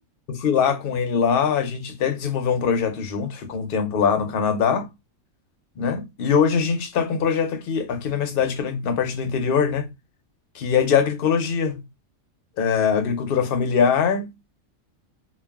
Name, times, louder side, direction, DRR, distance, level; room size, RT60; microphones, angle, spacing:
voice 1, 0.3-4.9 5.8-9.9 10.5-11.8 12.6-14.3, left 6 dB, 55° left, 0.7 m, -22 dB
3.1 x 2.3 x 2.2 m
omnidirectional pair, 1.5 m